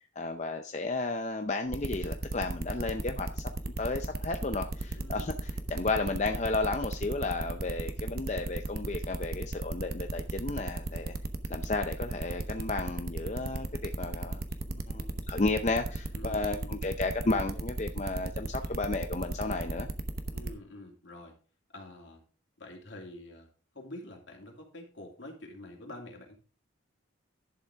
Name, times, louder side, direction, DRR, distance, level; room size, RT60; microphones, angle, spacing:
voice 1, 0.0-3.5 3.8-11.1 11.5-14.4 14.7-19.9, left 3 dB, 35° left, 0.6 m, -33 dB
sound 1, 1.7-20.5, right 2 dB, 45° right, 0.9 m, -35 dB
voice 2, 5.0-5.4 16.1-16.7 20.3-21.3 21.7-22.2 22.6-23.5 23.7-26.4, left 1 dB, 65° left, 2.7 m, -47 dB
11.0 x 7.1 x 3.5 m
head